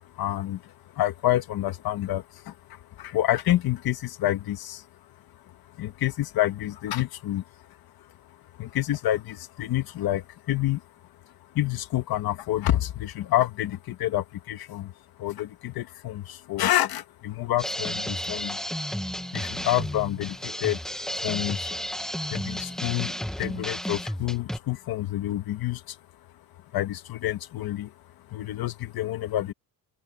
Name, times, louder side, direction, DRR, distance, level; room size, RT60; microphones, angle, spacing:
voice 1, 0.1-4.9 5.5-7.4 8.0-8.1 8.6-10.8 11.5-14.9 15.2-18.6 19.3-20.8 21.2-21.8 22.3-26.0 26.7-27.9 28.3-29.5, left 14 dB, 70° left, 1.5 m, -28 dB
sound 1, 17.6-24.6, equal, ahead, 1.1 m, -32 dB
open air
cardioid pair, 180°, 38 cm